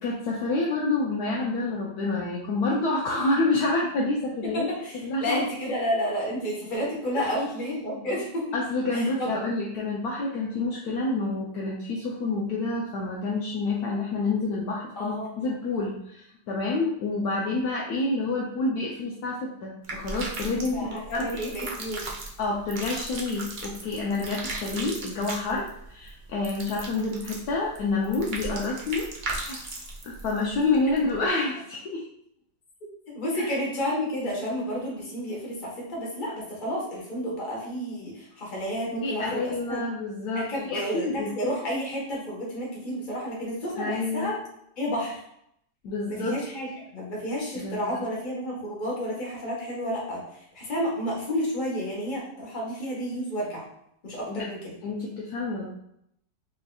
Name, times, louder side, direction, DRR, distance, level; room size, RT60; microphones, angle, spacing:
voice 1, 0.0-4.7 5.0-5.4 7.2-7.3 7.8-8.1 8.5-21.2 22.4-29.6 30.0-32.0 33.3-33.5 39.0-41.3 43.8-44.3 45.8-46.4 47.6-48.0 54.2-54.5 54.8-55.7, left 3 dB, 70° left, -3 dB, 1.0 m, -28 dB
voice 2, 4.6-8.6 8.9-9.3 14.9-15.5 20.7-22.1 33.1-39.8 40.3-44.3 44.8-45.2 46.1-50.2 50.5-53.6 54.0-54.7, equal, 30° left, -4 dB, 1.2 m, -31 dB
sound 1, 19.8-31.2, right 2 dB, 70° right, 0.4 m, -37 dB
5.1 x 2.8 x 2.3 m, 0.74 s
omnidirectional pair, 1.9 m